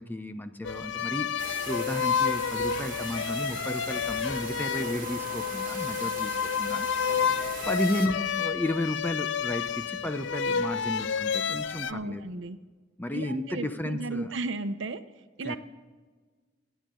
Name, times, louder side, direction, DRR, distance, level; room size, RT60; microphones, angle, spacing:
voice 1, 0.0-1.4 1.7-6.9 7.4-12.3 13.0-14.3 15.4-15.6, left 1 dB, 10° left, 9 dB, 0.6 m, -33 dB
sound 1, 0.6-11.9, left 7 dB, 65° left, 0.4 m, -30 dB
sound 2, 1.4-8.1, right 6 dB, 45° right, 1.7 m, -41 dB
voice 2, 11.9-12.6 13.1-15.0 15.4-15.6, right 3 dB, 75° right, 10 dB, 0.8 m, -34 dB
25.5 x 9.4 x 3.8 m, 1.4 s
head